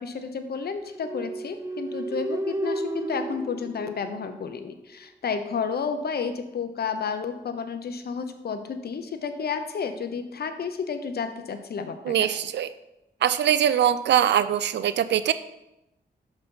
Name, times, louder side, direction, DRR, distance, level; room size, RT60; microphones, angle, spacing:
voice 1, 0.0-12.3, left 6 dB, 60° left, 8 dB, 0.7 m, -31 dB
sound 1, 0.9-4.7, right 2 dB, 15° right, 0.5 m, -33 dB
voice 2, 12.0-12.7 13.2-15.3, right 10 dB, 75° right, 13 dB, 0.4 m, -22 dB
5.6 x 4.0 x 5.4 m, 0.91 s
cardioid pair, 60°, 18 cm